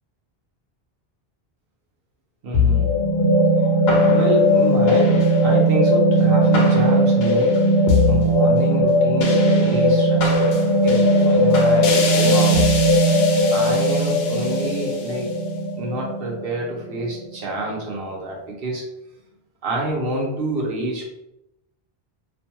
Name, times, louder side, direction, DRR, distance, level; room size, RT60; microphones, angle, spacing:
voice 1, 2.4-2.9 3.9-7.5 8.1-12.6 13.5-15.3 15.8-18.9 19.6-21.1, right 1 dB, 70° right, -2 dB, 0.9 m, -28 dB
sound 1, 2.5-17.0, equal, 80° left, 0.8 m, -17 dB
2.5 x 2.2 x 2.8 m, 0.87 s
omnidirectional pair, 1.0 m